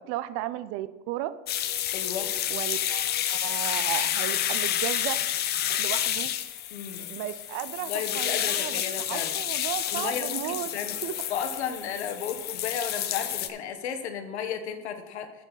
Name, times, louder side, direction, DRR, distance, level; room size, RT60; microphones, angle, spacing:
voice 1, 0.1-1.3 2.5-5.2 5.8-6.3 7.1-8.8 9.1-10.7 11.0-11.1, right 14 dB, 45° right, 14 dB, 0.6 m, -34 dB
sound 1, 1.5-13.5, left 11 dB, 30° left, 0.6 m, -29 dB
voice 2, 1.9-2.3 6.7-7.1 7.9-9.4 9.9-10.9 11.3-15.4, left 7 dB, 90° left, 8 dB, 1.3 m, -34 dB
9.6 x 7.3 x 4.1 m, 1.1 s
supercardioid pair, 125°, 32 cm